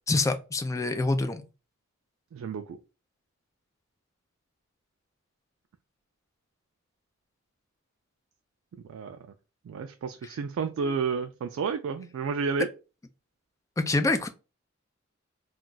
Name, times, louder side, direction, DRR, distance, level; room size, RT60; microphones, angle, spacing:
voice 1, 0.1-1.4 10.8-10.9 13.8-14.3, left 2 dB, 15° left, 0.3 m, -26 dB
voice 2, 2.3-2.6 8.9-9.2 9.7-12.7, right 5 dB, 80° right, 0.3 m, -31 dB
2.3 x 2.3 x 3.8 m
head